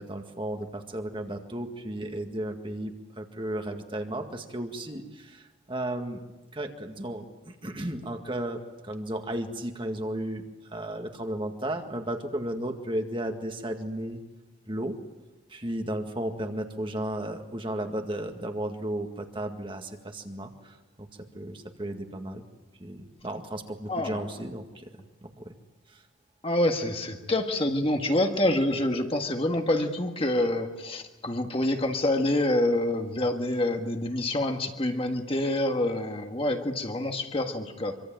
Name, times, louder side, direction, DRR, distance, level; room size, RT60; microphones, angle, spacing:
voice 1, 0.0-6.2 6.5-14.2 14.7-15.0 15.5-21.1 21.3-22.4 22.8-24.9 25.2-25.6 25.9-26.0, right 1 dB, 25° right, 5 dB, 1.9 m, -34 dB
voice 2, 23.9-24.2 26.4-38.0, left 1 dB, 30° left, 4 dB, 1.8 m, -27 dB
25.5 x 24.5 x 8.9 m, 1.1 s
head